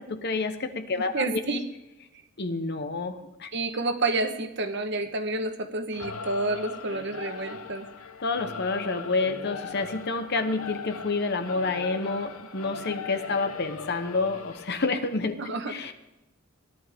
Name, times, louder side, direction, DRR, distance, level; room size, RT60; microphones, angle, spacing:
voice 1, 0.0-1.1 2.4-3.1 3.4-3.5 8.2-15.3 15.7-15.9, left 3 dB, 50° left, 8 dB, 1.0 m, -28 dB
voice 2, 1.1-1.6 3.5-7.9 15.4-15.7, right 2 dB, 55° right, 6 dB, 1.2 m, -29 dB
Singing / Musical instrument, 5.9-14.8, left 5 dB, 80° left, 0.9 m, -39 dB
17.5 x 11.0 x 3.6 m, 0.99 s
head